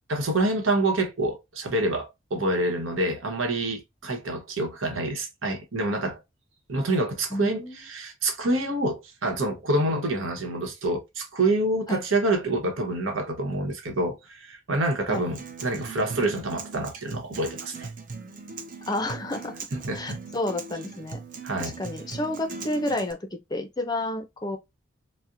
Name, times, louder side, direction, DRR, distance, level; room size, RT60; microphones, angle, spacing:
voice 1, 0.1-6.2 6.7-17.9 19.7-20.2 21.4-21.8, right 2 dB, 85° right, 1.0 m, -27 dB
voice 2, 7.3-7.8 11.9-12.0 15.1-15.2 18.9-19.5 19.9-21.2 21.6-24.6, left 1 dB, 20° left, 0.5 m, -30 dB
Acoustic guitar, 15.1-23.1, right 4 dB, 40° right, 0.6 m, -39 dB
4.1 x 2.1 x 2.5 m
head